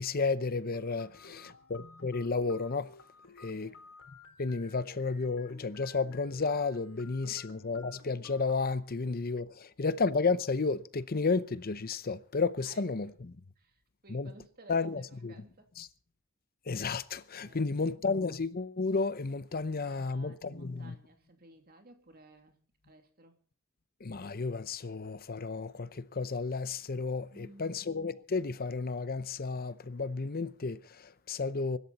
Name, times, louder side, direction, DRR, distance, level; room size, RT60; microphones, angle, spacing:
voice 1, 0.0-2.9 3.4-3.7 4.4-13.1 14.1-14.3 14.7-15.3 15.8-15.9 16.7-20.9 24.0-31.8, left 4 dB, 45° left, 0.7 m, -32 dB
sound 1, 0.7-8.7, left 2 dB, 75° left, 3.8 m, -54 dB
voice 2, 1.0-1.6 3.5-3.8 7.3-7.6 12.6-12.8 13.6-15.7 17.4-18.0 19.8-22.6 22.8-23.4 27.3-27.8, right 2 dB, 45° right, 2.7 m, -57 dB
24.0 x 12.5 x 4.2 m
head